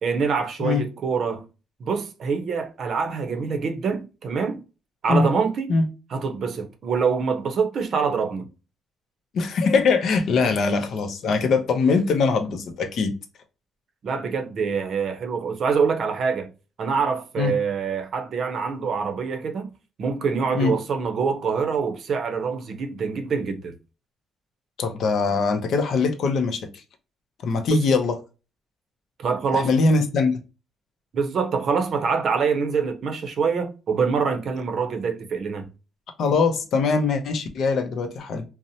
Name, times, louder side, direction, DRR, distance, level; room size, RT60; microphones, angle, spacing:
voice 1, 0.0-1.5 1.8-4.6 5.0-5.8 6.1-8.5 10.4-10.6 14.0-16.5 16.8-19.7 20.0-23.7 27.7-27.8 29.2-29.7 31.1-35.7, right 5 dB, 60° right, 0.6 m, -25 dB
voice 2, 9.3-13.1 17.4-17.5 20.5-20.7 24.8-26.6 27.4-28.2 29.5-30.4 36.2-38.4, left 4 dB, 65° left, 0.5 m, -22 dB
2.7 x 2.0 x 2.6 m
cardioid pair, 90°, 0 cm